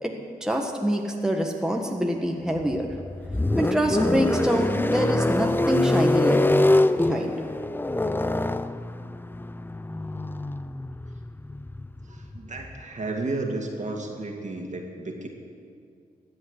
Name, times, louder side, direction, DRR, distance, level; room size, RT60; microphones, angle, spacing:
voice 1, 0.4-2.9 3.5-7.3, equal, 5° right, 1 dB, 1.5 m, -26 dB
sound 1, 2.6-12.8, left 2 dB, 15° left, 0.5 m, -25 dB
voice 2, 12.1-15.3, right 2 dB, 50° right, 2 dB, 2.2 m, -32 dB
14.0 x 8.7 x 8.1 m, 2.2 s
cardioid pair, 55°, 16 cm